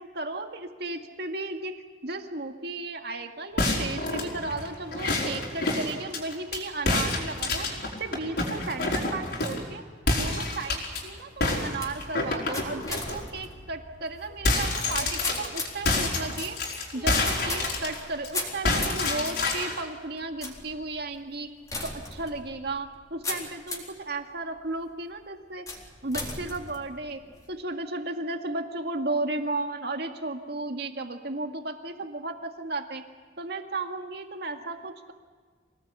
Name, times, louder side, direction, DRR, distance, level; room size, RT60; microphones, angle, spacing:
voice 1, 0.0-1.7 2.0-7.7 8.0-9.8 10.1-16.6 16.9-21.5 21.8-25.7 26.0-27.2 27.5-33.0 33.4-35.1, right 2 dB, 60° right, 5 dB, 2.1 m, -34 dB
sound 1, 3.6-6.6 6.9-9.7 10.1-11.0 11.4-13.2 13.6-13.7 14.0-18.3 18.6-19.8, left 2 dB, 65° left, 5.1 m, -28 dB
sound 2, 10.6-24.0 24.6-25.0 25.7-27.5, left 2 dB, 20° left, 3.9 m, -39 dB
25.5 x 18.5 x 8.3 m, 1.5 s
head